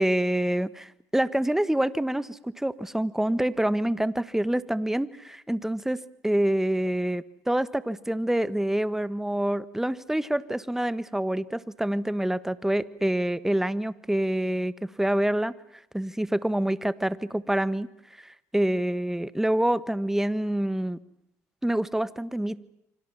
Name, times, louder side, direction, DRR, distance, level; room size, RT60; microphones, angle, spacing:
voice 1, 0.0-15.5 15.9-17.9 18.2-21.0 21.6-22.6, right 1 dB, 5° right, 16 dB, 1.4 m, -26 dB
28.5 x 25.5 x 7.3 m, 0.76 s
hypercardioid pair, 65°, 7 cm